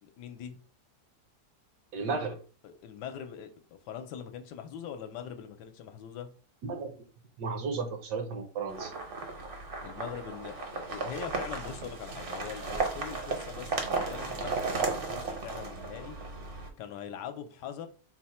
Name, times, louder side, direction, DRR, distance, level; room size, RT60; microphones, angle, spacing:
voice 1, 0.0-0.6 2.0-2.2 2.6-6.3 9.8-16.1 16.8-17.9, left 8 dB, 80° left, 1.2 m, -42 dB
voice 2, 1.9-2.4 6.6-6.9 7.4-8.9, right 4 dB, 75° right, 1.4 m, -33 dB
sound 1, 8.7-16.7, right 4 dB, 50° right, 0.7 m, -35 dB
4.5 x 2.1 x 4.2 m
omnidirectional pair, 1.9 m